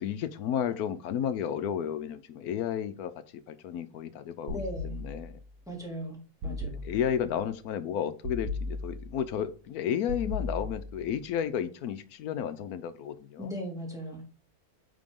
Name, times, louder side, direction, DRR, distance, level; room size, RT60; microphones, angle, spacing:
voice 1, 0.0-5.4 6.5-13.5, left 9 dB, 75° left, 12 dB, 1.2 m, -33 dB
voice 2, 4.5-5.0 5.7-6.8 13.4-14.2, equal, ahead, -3 dB, 2.4 m, -38 dB
sound 1, 4.5-5.5 6.4-7.3 8.2-9.3 10.1-11.2, left 2 dB, 90° right, 1.4 m, -37 dB
9.0 x 3.8 x 3.6 m, 0.38 s
omnidirectional pair, 1.6 m